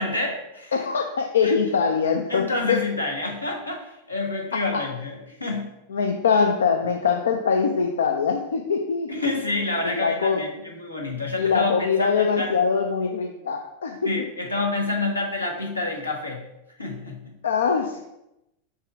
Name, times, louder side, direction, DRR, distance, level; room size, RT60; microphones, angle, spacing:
voice 1, 0.0-0.7 1.4-1.6 2.3-5.7 9.1-12.5 14.0-16.4 16.8-17.3, left 2 dB, 85° left, 0 dB, 1.2 m, -28 dB
voice 2, 0.7-2.8 4.5-4.8 5.9-9.2 9.8-10.4 11.4-14.1 17.4-18.0, left 5 dB, 65° left, 4 dB, 0.4 m, -23 dB
5.6 x 3.7 x 4.6 m, 0.88 s
figure-of-eight pair, 90°, 0 cm